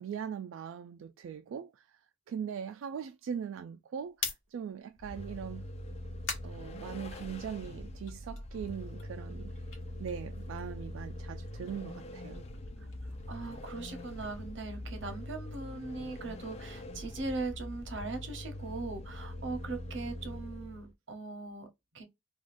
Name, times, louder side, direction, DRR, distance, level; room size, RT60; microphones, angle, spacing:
voice 1, 0.0-2.0 2.3-5.7 6.4-9.5 10.0-12.4, right 7 dB, 85° right, 0.3 m, -40 dB
sound 1, 4.0-7.5 7.9-10.9 11.2-15.3, left 4 dB, 85° left, 1.0 m, -46 dB
Vehicle, 5.0-20.9, left 1 dB, 35° left, 0.4 m, -43 dB
voice 2, 13.3-21.7 21.9-22.0, right 3 dB, 65° right, 0.8 m, -40 dB
3.4 x 2.3 x 2.5 m
head